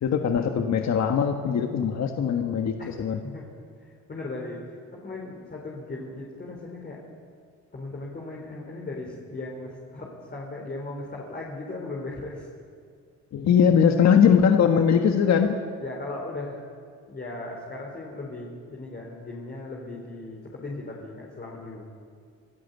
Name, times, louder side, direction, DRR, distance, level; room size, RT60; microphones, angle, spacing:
voice 1, 0.0-3.2 13.3-15.6, left 7 dB, 60° left, 4 dB, 1.5 m, -21 dB
voice 2, 3.8-4.6 4.9-7.0 7.7-12.5 15.8-16.6 17.1-21.9, left 2 dB, 35° left, -2 dB, 4.2 m, -37 dB
26.0 x 15.0 x 8.3 m, 2.2 s
cardioid pair, 90°, 30 cm